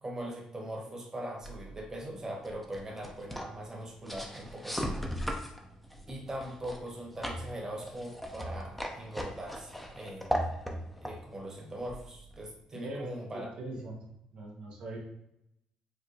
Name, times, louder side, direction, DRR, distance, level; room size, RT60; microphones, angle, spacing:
voice 1, 0.0-5.1 6.1-10.4 11.0-13.5, right 1 dB, 25° right, -2 dB, 1.1 m, -41 dB
sound 1, 1.4-12.5, equal, 5° left, 0.6 m, -39 dB
voice 2, 12.7-14.0 14.3-15.0, right 2 dB, 65° right, -3 dB, 0.9 m, -41 dB
4.7 x 2.1 x 2.7 m, 0.80 s
cardioid pair, 80°, 2 cm